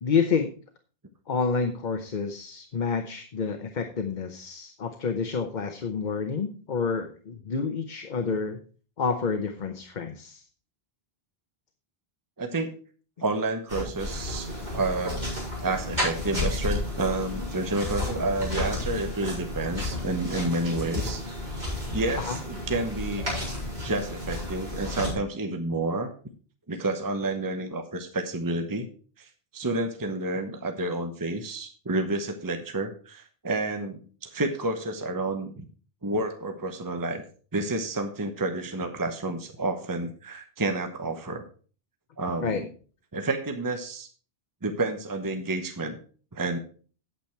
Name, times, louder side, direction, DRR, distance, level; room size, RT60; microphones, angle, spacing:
voice 1, 0.0-0.5 1.3-8.6 9.0-10.4 22.2-22.4 42.4-42.6, left 5 dB, 50° left, 7 dB, 0.9 m, -29 dB
voice 2, 12.4-12.7 13.2-15.2 15.6-21.2 21.9-23.3 23.8-26.1 26.7-28.9 29.2-35.6 36.0-37.2 37.5-41.4 42.2-42.7 43.1-44.1 44.6-46.0 46.3-46.6, right 2 dB, 20° right, 6 dB, 1.0 m, -30 dB
sound 1, 13.7-25.1, left 1 dB, 45° right, 6.2 m, -32 dB
8.6 x 8.6 x 4.5 m, 0.40 s
omnidirectional pair, 1.0 m